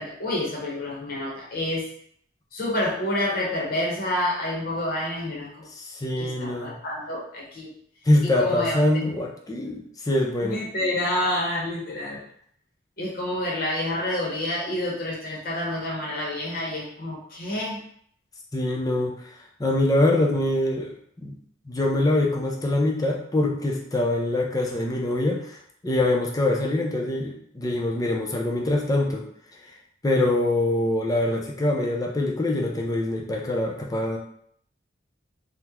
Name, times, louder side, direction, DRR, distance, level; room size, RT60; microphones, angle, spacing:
voice 1, 0.0-1.8 2.5-5.7 6.2-7.7 8.2-8.8 10.4-12.2 13.0-17.8, left 1 dB, 55° left, -4 dB, 0.8 m, -28 dB
voice 2, 5.8-6.8 8.1-10.6 18.5-19.1 19.6-20.9 21.2-21.3 21.7-25.6 25.8-29.2 30.0-34.2, left 1 dB, 20° left, -1 dB, 0.5 m, -24 dB
2.9 x 2.1 x 3.4 m, 0.65 s
head